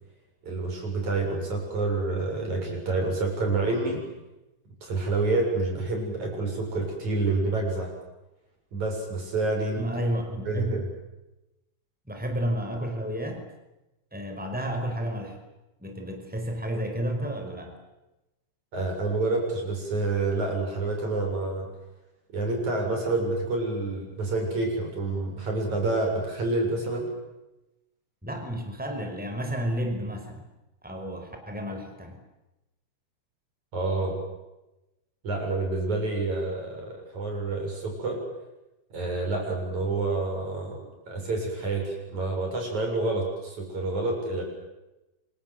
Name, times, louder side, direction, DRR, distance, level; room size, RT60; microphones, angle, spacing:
voice 1, 0.4-4.0 4.8-7.9 8.7-9.8 10.5-10.9 18.7-21.7 22.3-27.1 33.7-34.2 35.2-38.2 38.9-40.8 41.1-44.4, right 3 dB, 75° right, 2 dB, 8.7 m, -28 dB
voice 2, 9.7-10.8 12.1-13.4 14.1-15.4 15.8-17.8 28.2-30.4 30.8-32.2, equal, 5° right, 4 dB, 4.9 m, -31 dB
28.5 x 26.5 x 7.9 m, 0.97 s
omnidirectional pair, 3.4 m